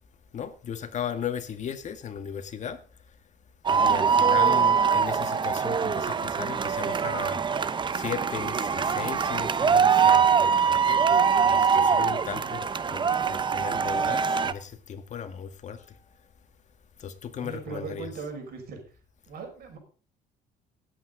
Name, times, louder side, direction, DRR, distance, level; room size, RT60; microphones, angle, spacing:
voice 1, 0.3-2.8 3.7-7.4 7.9-11.0 11.4-15.9 17.0-18.1, left 8 dB, 45° left, 8 dB, 1.8 m, -36 dB
sound 1, 3.6-14.5, right 6 dB, 30° right, 0.7 m, -23 dB
voice 2, 17.4-19.0 19.3-19.8, right 4 dB, 65° right, 3 dB, 5.6 m, -39 dB
18.0 x 8.5 x 3.9 m, 0.39 s
cardioid pair, 110°, 17 cm